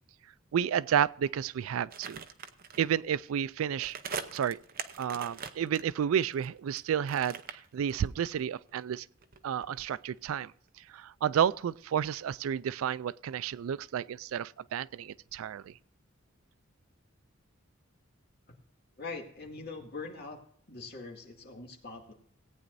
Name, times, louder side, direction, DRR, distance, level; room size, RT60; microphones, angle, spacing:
voice 1, 0.5-2.2 2.8-4.0 4.3-4.6 5.0-9.1 9.4-10.5 10.9-15.7, right 8 dB, 80° right, 0.3 m, -31 dB
sound 1, 1.9-2.9 3.7-6.8 7.1-8.4 8.7-10.3 10.6-10.7, right 6 dB, 45° right, 0.7 m, -42 dB
voice 2, 19.0-20.4 20.7-22.1, left 3 dB, 50° left, 2.2 m, -42 dB
18.0 x 9.0 x 2.6 m
head